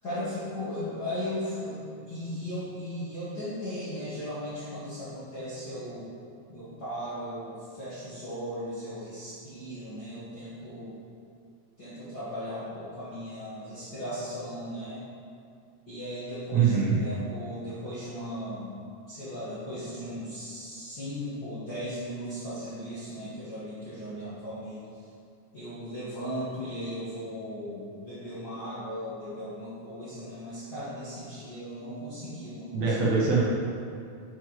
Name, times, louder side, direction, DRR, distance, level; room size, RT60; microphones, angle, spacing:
voice 1, 0.0-6.1 6.5-11.0 11.8-15.0 15.9-18.8 19.1-25.0 25.5-32.9, equal, 45° left, -12 dB, 1.3 m, -37 dB
voice 2, 16.5-17.0 32.7-33.4, right 5 dB, 65° right, -5 dB, 1.9 m, -23 dB
9.5 x 6.1 x 3.1 m, 2.4 s
omnidirectional pair, 3.9 m